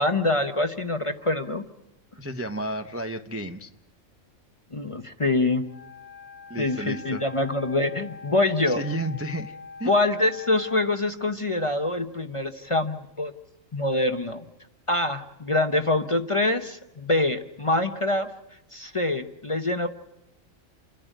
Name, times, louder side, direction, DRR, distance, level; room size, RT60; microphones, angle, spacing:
voice 1, 0.0-1.6 4.7-5.7 6.6-8.8 9.9-13.3 13.7-14.4 14.9-18.3 18.7-19.9, left 2 dB, 30° left, 7 dB, 0.7 m, -25 dB
voice 2, 2.2-3.7 6.5-7.2 8.6-9.9, right 1 dB, 15° right, 6 dB, 0.5 m, -32 dB
Wind instrument woodwind instrument, 5.6-10.9, left 4 dB, 55° left, 1.1 m, -43 dB
28.5 x 11.0 x 9.1 m, 0.94 s
omnidirectional pair, 1.4 m